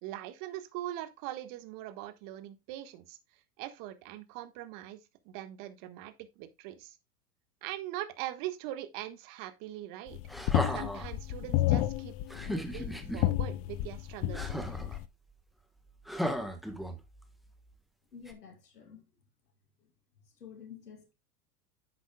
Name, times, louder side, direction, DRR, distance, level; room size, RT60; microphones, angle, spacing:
voice 1, 0.0-3.2 3.6-5.0 5.2-7.0 7.6-10.2 10.7-12.1 12.4-14.9, right 14 dB, 45° right, 1.5 m, -42 dB
sound 1, 10.1-15.1, left 15 dB, 30° left, 0.4 m, -31 dB
sound 2, 10.3-11.1 12.3-13.2 14.3-15.0 16.1-17.2 18.3-18.4, equal, ahead, 1.2 m, -35 dB
voice 2, 18.1-19.0 19.8-19.9 20.4-21.1, left 7 dB, 80° left, 2.4 m, -50 dB
10.5 x 8.0 x 2.2 m
hypercardioid pair, 95°, 47 cm